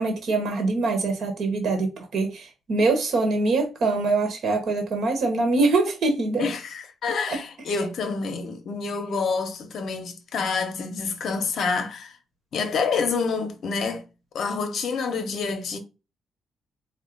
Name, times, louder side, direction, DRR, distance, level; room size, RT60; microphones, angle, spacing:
voice 1, 0.0-6.5, right 3 dB, 55° right, 1.1 m, -24 dB
voice 2, 6.4-12.2 12.5-14.0 14.3-15.8, left 5 dB, 55° left, 0.8 m, -27 dB
4.4 x 2.2 x 3.8 m
wide cardioid pair, 175°, 0 cm